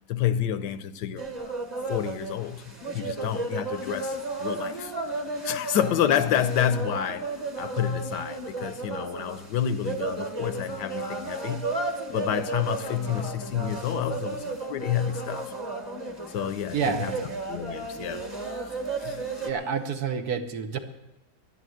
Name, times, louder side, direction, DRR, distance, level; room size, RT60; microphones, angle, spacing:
voice 1, 0.1-1.2 1.9-4.9 5.4-11.7 12.1-15.5 16.3-17.2 17.5-19.5, left 9 dB, 75° left, 1.3 m, -29 dB
sound 1, 1.2-19.5, right 2 dB, 15° right, 1.4 m, -34 dB
voice 2, 16.7-17.4 19.4-20.8, right 6 dB, 65° right, 1.5 m, -29 dB
11.0 x 11.0 x 7.8 m
omnidirectional pair, 1.9 m